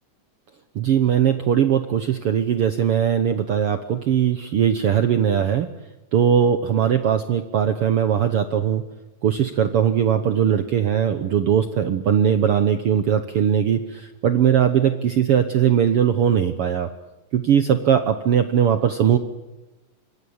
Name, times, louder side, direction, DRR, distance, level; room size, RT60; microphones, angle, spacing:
voice 1, 0.7-5.7 6.1-8.8 9.2-16.9 17.3-19.2, right 9 dB, 70° right, 10 dB, 1.3 m, -20 dB
26.0 x 21.0 x 8.8 m, 1.0 s
omnidirectional pair, 4.0 m